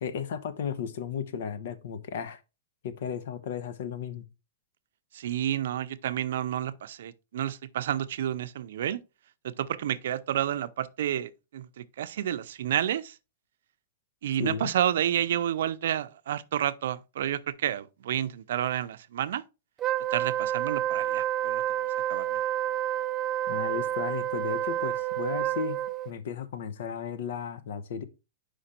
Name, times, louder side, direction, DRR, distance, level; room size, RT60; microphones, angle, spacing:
voice 1, 0.0-2.4 2.8-4.2 14.4-14.7 23.5-28.0, left 7 dB, 70° left, 0.9 m, -34 dB
voice 2, 5.1-9.0 9.6-13.2 14.2-19.4 20.1-21.6 22.1-22.4, right 11 dB, 75° right, 0.5 m, -30 dB
Wind instrument woodwind instrument, 19.8-26.1, right 11 dB, 20° right, 0.5 m, -29 dB
5.1 x 5.1 x 4.3 m
supercardioid pair, 150°, 0 cm